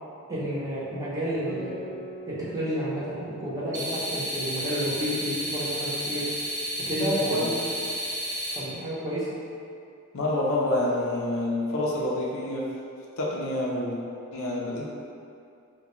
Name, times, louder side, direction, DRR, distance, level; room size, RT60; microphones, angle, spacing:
voice 1, 0.3-1.9 2.3-6.3 6.8-7.6 8.5-9.3, equal, 15° right, -9 dB, 0.7 m, -30 dB
Guitar, 1.5-6.4, right 1 dB, 10° left, 0.4 m, -45 dB
sound 1, 3.7-8.6, equal, 60° right, 0.8 m, -32 dB
voice 2, 6.9-7.4 10.1-12.7 13.2-14.0 14.3-14.9, left 1 dB, 65° left, -4 dB, 0.5 m, -28 dB
3.5 x 2.2 x 2.9 m, 2.5 s
head